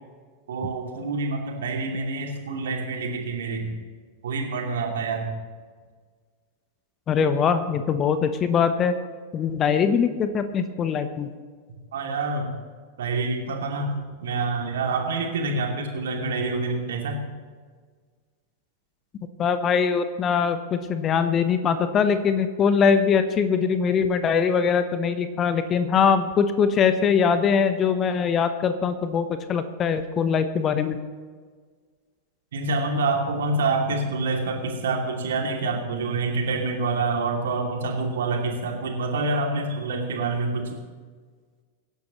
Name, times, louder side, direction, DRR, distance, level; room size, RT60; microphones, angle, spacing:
voice 1, 0.5-3.7 4.2-5.3 11.9-12.5 13.0-13.9 14.2-17.2 32.5-40.7, right 3 dB, 60° right, 1 dB, 2.7 m, -27 dB
voice 2, 7.1-8.9 9.3-11.3 19.4-31.0, left 6 dB, 30° left, 10 dB, 1.0 m, -22 dB
24.0 x 11.5 x 3.1 m, 1.5 s
figure-of-eight pair, 90°, 0 cm